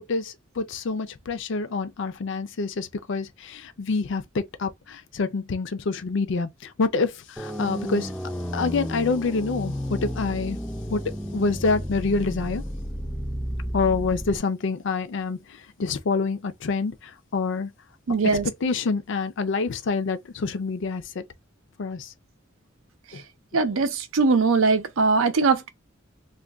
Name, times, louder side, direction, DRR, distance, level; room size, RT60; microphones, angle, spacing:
voice 1, 0.0-8.1 8.5-10.6 10.9-11.0 11.3-12.6 13.7-17.7 18.2-21.2 21.8-22.1 23.1-23.2, left 4 dB, 65° left, 0.5 m, -27 dB
sound 1, 7.4-14.4, equal, ahead, 0.4 m, -32 dB
voice 2, 18.1-18.5 23.5-25.7, right 4 dB, 90° right, 0.6 m, -21 dB
2.5 x 2.2 x 3.3 m
head